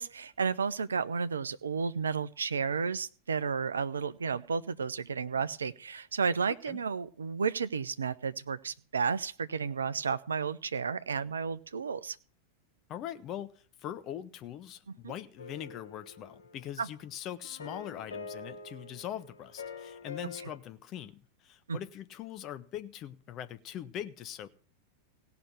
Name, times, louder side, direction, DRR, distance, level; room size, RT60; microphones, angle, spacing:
voice 1, 0.0-12.2 15.0-15.1 16.8-16.9 21.7-21.8, right 5 dB, 70° right, 0.6 m, -32 dB
voice 2, 12.9-24.5, left 10 dB, 35° left, 0.9 m, -42 dB
sound 1, 15.4-16.9 17.4-20.6, left 4 dB, 60° left, 3.9 m, -45 dB
17.0 x 5.9 x 7.9 m
figure-of-eight pair, 90°, 0 cm